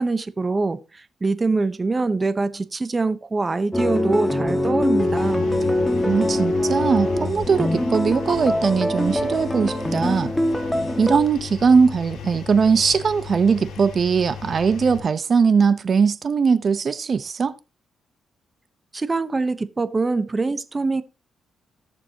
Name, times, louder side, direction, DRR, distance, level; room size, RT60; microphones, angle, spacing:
voice 1, 0.0-5.5 18.9-21.0, right 3 dB, 25° right, 1.0 m, -24 dB
sound 1, 3.7-11.2, left 1 dB, 5° left, 1.7 m, -23 dB
Engine, 5.0-15.0, left 6 dB, 80° left, 3.0 m, -36 dB
voice 2, 6.0-10.3 11.0-17.6, right 5 dB, 50° right, 0.9 m, -20 dB
18.5 x 6.9 x 3.0 m
cardioid pair, 95°, 0 cm